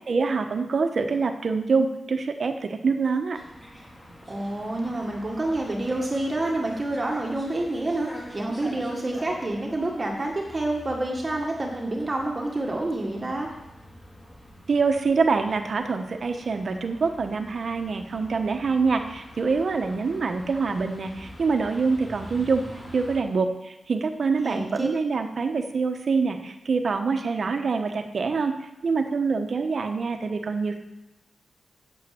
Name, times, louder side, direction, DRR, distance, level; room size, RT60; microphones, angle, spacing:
voice 1, 0.1-3.4 14.7-22.6 22.9-30.8, right 4 dB, 55° right, 6 dB, 1.1 m, -25 dB
sound 1, 3.3-23.2, equal, 20° left, 4.4 m, -45 dB
voice 2, 4.3-13.5 24.4-24.9, right 2 dB, 25° right, 0 dB, 1.7 m, -28 dB
8.8 x 8.2 x 7.6 m, 0.99 s
wide cardioid pair, 95°, 0 cm